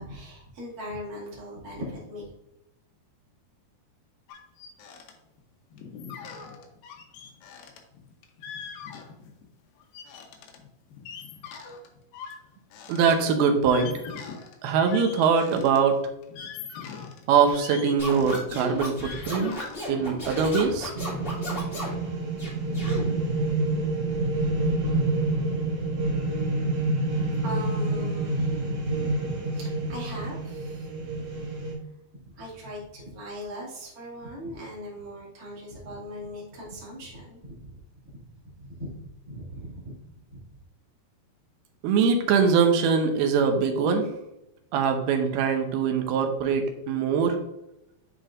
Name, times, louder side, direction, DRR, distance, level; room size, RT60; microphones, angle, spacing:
voice 1, 0.0-2.3 27.4-31.2 32.3-37.8 38.1-38.2 38.6-40.0 40.3-40.4, equal, 30° right, -5 dB, 2.2 m, -39 dB
sound 1, 4.3-5.1 5.4-5.5 5.7-9.5 9.8-15.8 16.2-19.8, left 6 dB, 75° left, 2.5 m, -42 dB
voice 2, 12.9-13.9 14.6-16.0 17.3-19.6 19.9-20.9 41.8-44.1 44.7-47.4, right 6 dB, 80° right, 5 dB, 2.6 m, -22 dB
Scratching (performance technique), 18.0-22.0 22.4-23.0, left 1 dB, 25° left, 1.2 m, -34 dB
sound 2, 20.9-31.7, right 2 dB, 55° right, 4.0 m, -28 dB
9.8 x 4.5 x 2.5 m, 0.87 s
omnidirectional pair, 4.6 m